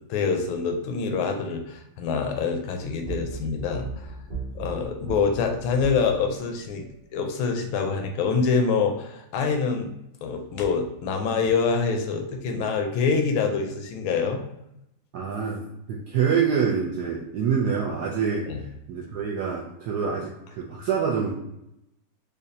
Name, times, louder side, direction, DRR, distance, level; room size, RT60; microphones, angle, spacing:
voice 1, 0.1-4.1 4.6-6.9 7.1-9.9 10.2-14.4 18.5-18.7, left 5 dB, 85° left, 4 dB, 1.4 m, -25 dB
sound 1, 2.8-6.8, right 4 dB, 35° right, 0.8 m, -37 dB
voice 2, 15.1-15.6 15.9-18.5 18.9-21.3, right 6 dB, 75° right, -2 dB, 0.9 m, -26 dB
5.1 x 2.2 x 2.7 m, 0.83 s
omnidirectional pair, 2.2 m